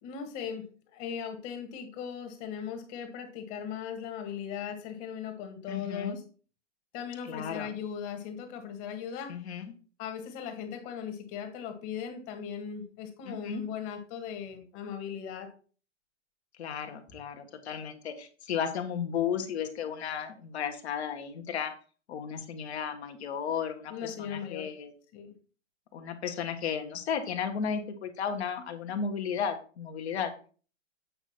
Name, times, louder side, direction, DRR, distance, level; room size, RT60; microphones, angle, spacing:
voice 1, 0.0-0.7 0.9-6.2 6.9-9.4 10.0-15.5 23.9-24.7 25.1-25.3, left 7 dB, 35° left, 6 dB, 1.9 m, -38 dB
voice 2, 5.7-6.2 7.3-7.7 9.3-9.6 13.3-13.6 16.6-21.7 22.1-24.9 25.9-30.3, left 7 dB, 55° left, 6 dB, 1.7 m, -34 dB
8.9 x 5.1 x 4.3 m, 0.39 s
hypercardioid pair, 120°, 38 cm